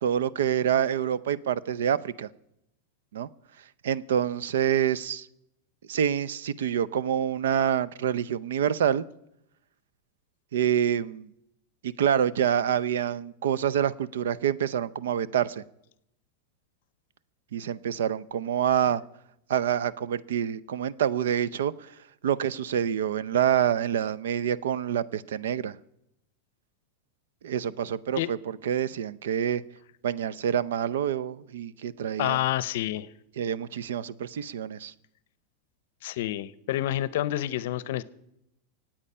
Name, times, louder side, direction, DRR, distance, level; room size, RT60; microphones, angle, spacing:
voice 1, 0.0-2.3 3.1-3.3 3.8-5.3 5.9-9.0 10.5-11.3 11.8-15.6 17.5-19.0 19.5-21.9 22.2-25.8 27.4-29.6 30.0-32.4 33.4-34.9, right 9 dB, 90° right, 0.6 m, -27 dB
voice 2, 32.2-33.1 36.0-38.0, left 13 dB, 70° left, 0.6 m, -28 dB
24.5 x 8.8 x 5.6 m
supercardioid pair, 150°, 0 cm